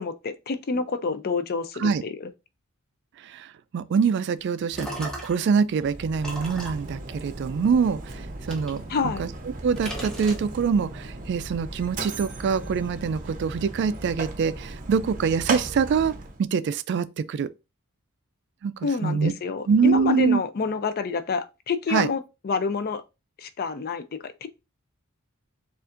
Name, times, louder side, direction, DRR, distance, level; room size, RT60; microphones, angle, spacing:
voice 1, 0.0-2.3 8.9-9.2 18.8-23.0 23.4-24.5, left 4 dB, 45° left, 0.4 m, -28 dB
voice 2, 3.2-9.3 9.6-16.1 16.4-17.5 18.6-18.7 19.0-19.3 19.7-20.4 21.9-22.1, right 6 dB, 55° right, 0.3 m, -24 dB
sound 1, 4.4-5.6 6.2-7.9 8.5-9.5 9.8-10.9, right 1 dB, 5° left, 0.9 m, -38 dB
Mechanisms, 5.7-16.4, right 2 dB, 40° right, 0.7 m, -37 dB
6.8 x 2.5 x 2.5 m
head